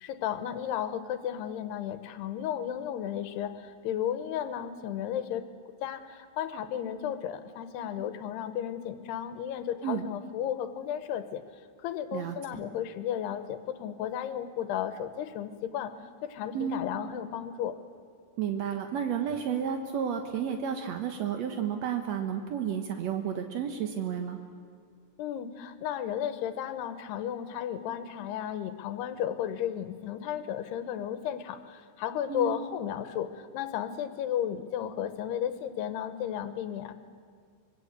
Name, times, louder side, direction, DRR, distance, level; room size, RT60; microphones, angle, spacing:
voice 1, 0.0-5.4 5.8-11.4 11.8-15.9 16.3-17.7 25.2-36.9, left 10 dB, 80° left, 11 dB, 3.1 m, -34 dB
voice 2, 12.1-12.6 16.5-16.8 18.4-24.4 32.3-32.6, right 8 dB, 75° right, 5 dB, 1.5 m, -32 dB
25.5 x 21.5 x 8.1 m, 2.2 s
omnidirectional pair, 4.8 m